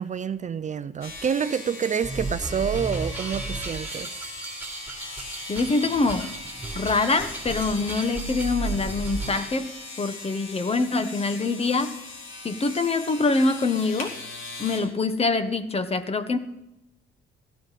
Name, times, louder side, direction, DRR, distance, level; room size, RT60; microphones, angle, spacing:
voice 1, 0.0-4.2, right 7 dB, 35° right, 0.5 m, -28 dB
sound 1, 1.0-14.8, left 2 dB, 85° left, 2.9 m, -40 dB
sound 2, 2.0-9.5, right 2 dB, 10° right, 3.2 m, -34 dB
voice 2, 5.5-6.3 6.7-12.0 12.4-14.2 14.6-16.4, left 3 dB, 30° left, 1.2 m, -25 dB
17.0 x 14.0 x 4.2 m
cardioid pair, 90°, 20 cm